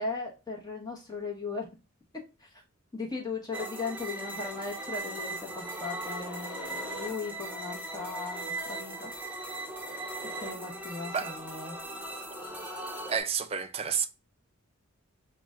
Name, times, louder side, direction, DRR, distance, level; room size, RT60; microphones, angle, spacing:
voice 1, 0.0-1.7 2.4-2.5 2.9-9.1 10.3-11.8, left 4 dB, 20° left, 0.9 m, -37 dB
sound 1, 3.5-13.2, right 2 dB, 10° right, 0.8 m, -38 dB
voice 2, 13.1-14.1, right 7 dB, 30° right, 0.4 m, -30 dB
4.9 x 2.2 x 3.4 m
head